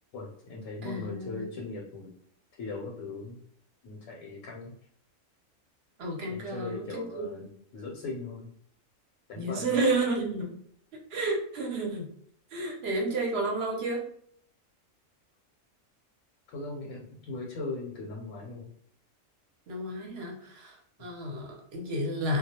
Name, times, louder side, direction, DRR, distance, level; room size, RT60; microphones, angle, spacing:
voice 1, 0.1-2.1 2.6-3.4 3.8-4.8 6.3-7.5 7.7-8.5 9.3-9.9 16.5-18.7, left 3 dB, 85° left, -2 dB, 1.0 m, -39 dB
voice 2, 0.8-1.5 6.0-7.3 9.4-10.5 11.1-12.1 12.5-14.1 19.7-22.4, right 2 dB, 60° right, -1 dB, 0.8 m, -31 dB
2.3 x 2.0 x 2.7 m, 0.66 s
omnidirectional pair, 1.4 m